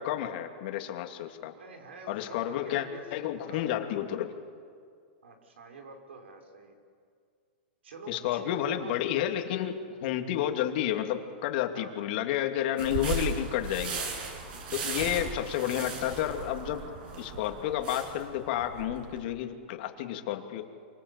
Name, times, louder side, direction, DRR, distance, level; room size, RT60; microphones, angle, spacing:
voice 1, 0.0-1.5 2.1-2.9 3.1-4.3 8.1-14.0 14.7-16.8 17.2-20.6, left 11 dB, 55° left, 5 dB, 2.6 m, -31 dB
voice 2, 1.5-3.1 3.5-3.7 5.2-6.7 7.8-8.9 11.7-12.1, right 4 dB, 90° right, 4 dB, 5.2 m, -47 dB
sound 1, 12.8-19.2, right 4 dB, 60° right, 7.5 m, -37 dB
27.5 x 24.5 x 8.4 m, 2.2 s
hypercardioid pair, 140°, 6 cm